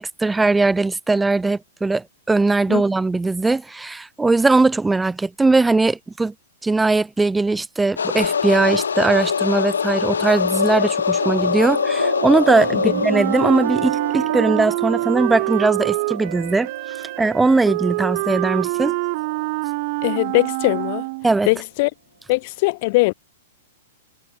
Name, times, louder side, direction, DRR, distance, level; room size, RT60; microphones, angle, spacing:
voice 1, 0.0-6.3 6.6-19.0 21.2-21.5, right 3 dB, 10° right, 2.7 m, -20 dB
sound 1, 8.0-14.6, left 6 dB, 90° left, 3.0 m, -23 dB
sound 2, 11.2-20.6, right 7 dB, 85° right, 1.8 m, -31 dB
Wind instrument woodwind instrument, 13.1-21.4, right 26 dB, 50° right, 0.8 m, -25 dB
voice 2, 20.0-21.1 21.4-21.9 22.3-23.1, left 24 dB, 50° left, 1.4 m, -20 dB
hypercardioid pair, 125°, 0 cm